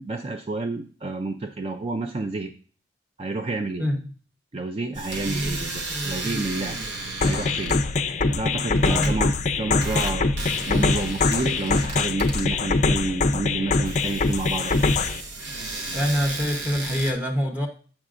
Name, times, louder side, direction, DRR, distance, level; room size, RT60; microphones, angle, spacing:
voice 1, 0.0-2.5 3.2-3.8 4.5-6.8 7.2-7.8 8.3-9.3 9.6-10.3 10.7-14.8, right 3 dB, 35° right, 0.4 m, -29 dB
voice 2, 3.8-4.1 8.8-9.3 15.9-17.7, equal, 10° right, 0.8 m, -25 dB
sound 1, 4.9-17.1, right 2 dB, 75° right, 1.1 m, -34 dB
sound 2, 7.2-15.2, left 3 dB, 40° left, 0.4 m, -23 dB
7.4 x 6.1 x 2.5 m
head